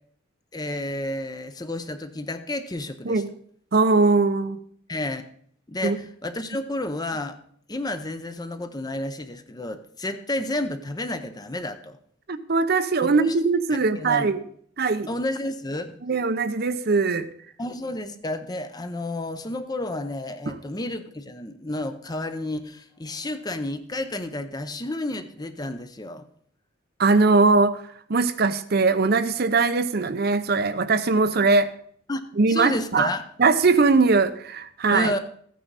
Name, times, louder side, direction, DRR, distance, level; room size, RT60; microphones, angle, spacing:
voice 1, 0.5-3.2 4.9-5.2 5.7-7.4 7.7-12.0 13.0-13.3 14.0-14.4 15.1-16.0 17.6-26.2 32.1-33.2 34.9-35.2, left 1 dB, 20° left, 9 dB, 0.7 m, -31 dB
voice 2, 3.7-4.6 5.8-6.0 12.3-14.4 14.8-15.1 16.0-17.3 20.5-20.6 27.0-27.8 28.1-31.7 32.4-33.1 33.4-35.1, right 4 dB, 50° right, 11 dB, 0.6 m, -21 dB
14.0 x 9.2 x 4.1 m, 0.62 s
head